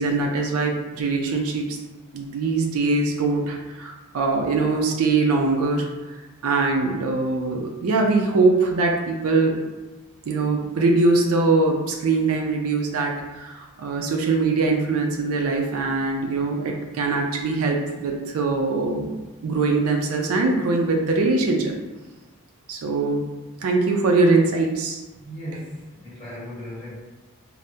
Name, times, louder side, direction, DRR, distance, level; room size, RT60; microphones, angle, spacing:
voice 1, 0.0-1.7 2.1-9.6 10.3-19.2 19.4-21.7 22.7-23.3 23.6-25.0, right 3 dB, 75° right, 1 dB, 0.4 m, -22 dB
voice 2, 25.1-26.9, equal, 25° left, -10 dB, 1.4 m, -37 dB
3.4 x 2.0 x 2.6 m, 1.2 s
head